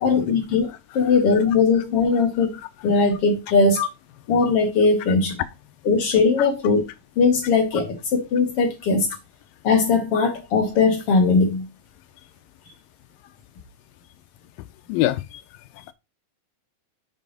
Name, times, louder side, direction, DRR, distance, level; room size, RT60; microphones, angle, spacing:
voice 1, 0.0-2.6 2.8-3.8 4.3-5.3 5.9-6.9 7.2-9.1 9.6-11.7, left 4 dB, 55° left, 1.9 m, -19 dB
voice 2, 14.9-15.4 15.8-15.9, left 14 dB, 85° left, 2.3 m, -25 dB
6.9 x 4.7 x 3.9 m
omnidirectional pair, 3.9 m